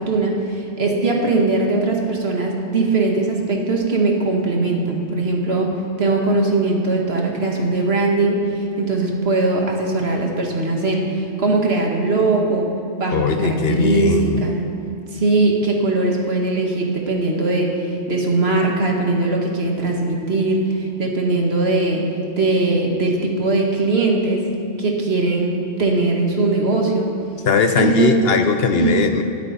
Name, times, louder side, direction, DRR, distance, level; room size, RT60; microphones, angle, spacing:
voice 1, 0.0-5.7 6.0-12.7 13.0-14.6 15.1-22.0 22.4-24.4 24.8-27.1 27.8-28.3 28.7-29.0, right 3 dB, 60° right, 0 dB, 1.8 m, -20 dB
voice 2, 13.1-14.4 27.5-29.2, left 5 dB, 60° left, 7 dB, 0.8 m, -19 dB
19.5 x 8.6 x 4.1 m, 2.6 s
omnidirectional pair, 1.2 m